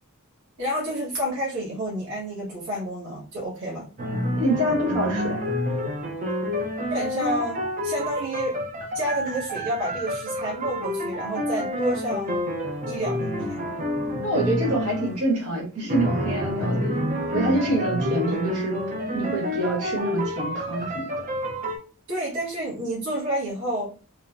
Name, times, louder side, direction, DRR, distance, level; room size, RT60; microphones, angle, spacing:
voice 1, 0.6-3.9 6.9-8.7 8.9-12.4 12.9-13.7 22.1-23.9, right 1 dB, 60° right, -6 dB, 1.1 m, -29 dB
sound 1, 4.0-15.2 15.9-21.8, equal, 35° right, 0.5 m, -28 dB
voice 2, 4.4-5.5 14.2-16.9 17.3-18.7 19.1-21.1, right 1 dB, 85° right, -3 dB, 1.4 m, -26 dB
3.1 x 2.0 x 2.3 m, 0.37 s
head